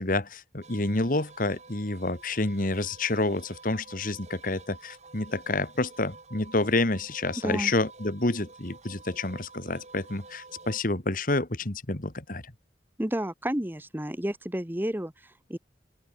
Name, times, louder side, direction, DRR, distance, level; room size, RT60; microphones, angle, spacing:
voice 1, 0.0-12.5, left 2 dB, 50° left, 2.0 m, -29 dB
sound 1, 0.6-10.8, right 3 dB, 40° right, 6.2 m, -50 dB
voice 2, 13.0-15.6, right 1 dB, 10° right, 1.3 m, -31 dB
head